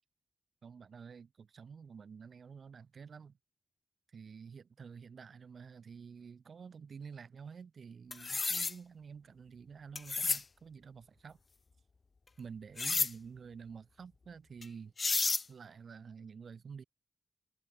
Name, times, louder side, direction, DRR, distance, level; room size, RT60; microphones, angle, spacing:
voice 1, 0.6-3.4 4.1-11.4 12.4-14.9 15.5-16.8, right 6 dB, 70° right, 3.8 m, -50 dB
sound 1, 8.1-8.7 10.0-10.4 12.8-13.1 14.6-14.7 15.0-15.4, left 4 dB, 50° left, 0.8 m, -31 dB
cardioid pair, 45°, 0 cm